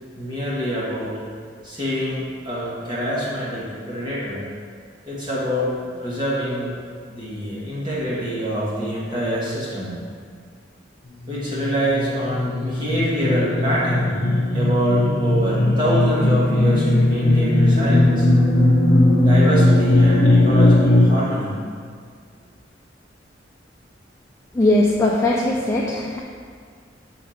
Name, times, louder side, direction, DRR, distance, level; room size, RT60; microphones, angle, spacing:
voice 1, 0.1-1.1 1.6-4.4 5.1-6.7 7.1-10.0 11.3-14.3 14.5-18.3 19.2-21.5, equal, 25° right, -8 dB, 1.3 m, -25 dB
sound 1, 11.3-21.0, left 1 dB, 55° left, 0.7 m, -17 dB
voice 2, 24.5-26.2, left 1 dB, 15° left, -3 dB, 0.4 m, -19 dB
6.6 x 3.9 x 4.3 m, 2.1 s
head